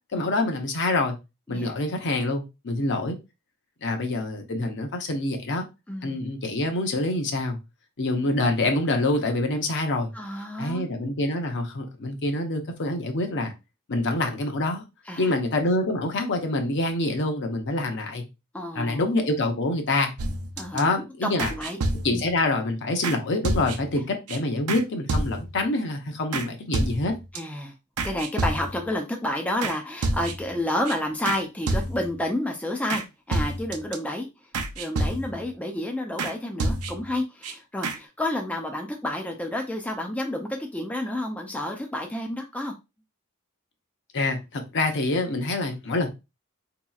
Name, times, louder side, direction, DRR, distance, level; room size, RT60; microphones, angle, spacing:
voice 1, 0.1-1.2 1.5-3.2 3.8-5.6 6.0-7.6 8.0-10.1 10.6-13.5 13.9-14.8 15.2-18.2 18.7-20.1 20.7-21.5 22.0-27.1 44.1-46.1, left 2 dB, 55° left, 0.7 m, -26 dB
voice 2, 5.9-6.2 10.1-10.9 15.1-15.3 18.5-19.0 20.6-20.9 21.2-21.8 22.1-22.2 23.9-24.0 27.3-27.7 28.0-34.3 34.8-42.7, left 1 dB, 5° left, 0.4 m, -30 dB
sound 1, 20.2-20.8 21.4-22.3 23.0-23.2 23.4-24.0 24.3-24.4 24.7-24.8 25.1-25.6 26.3-26.5 26.7-27.4 28.0-28.9 29.6-29.8 30.0-30.5 30.9-31.0 31.3-31.4 31.7-32.2 32.9-33.0 33.3-34.0 34.5-35.5 36.2-36.3 36.6-37.1 37.4-37.5 37.8-38.0, right 2 dB, 75° right, 0.6 m, -28 dB
4.0 x 2.8 x 2.3 m
head